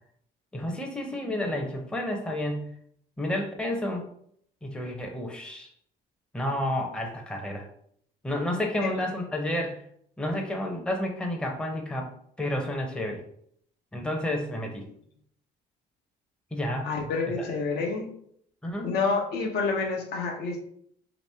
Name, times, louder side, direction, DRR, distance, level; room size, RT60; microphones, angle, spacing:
voice 1, 0.5-2.7 3.2-4.0 4.6-5.7 6.3-7.7 8.2-9.8 10.2-12.1 12.4-13.2 13.9-14.8 16.5-16.9 17.3-17.5 18.6-18.9, left 1 dB, 5° left, 2 dB, 0.6 m, -30 dB
voice 2, 16.8-18.1 18.8-20.6, left 4 dB, 75° left, 2 dB, 0.8 m, -28 dB
3.0 x 2.9 x 3.3 m, 0.67 s
cardioid pair, 110°, 17 cm